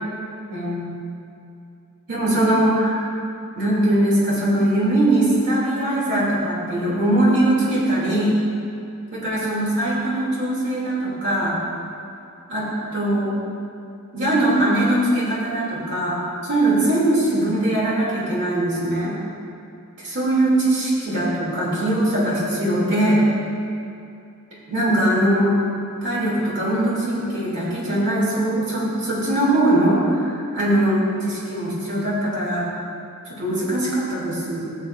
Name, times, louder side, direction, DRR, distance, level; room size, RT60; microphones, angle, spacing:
voice 1, 0.5-0.9 2.1-3.1 3.6-8.4 9.1-11.6 12.5-13.4 14.1-16.2 16.4-19.2 20.0-23.2 24.7-25.6 26.0-32.7 33.3-34.6, right 1 dB, 55° right, -6 dB, 2.6 m, -21 dB
17.5 x 7.5 x 2.5 m, 2.5 s
head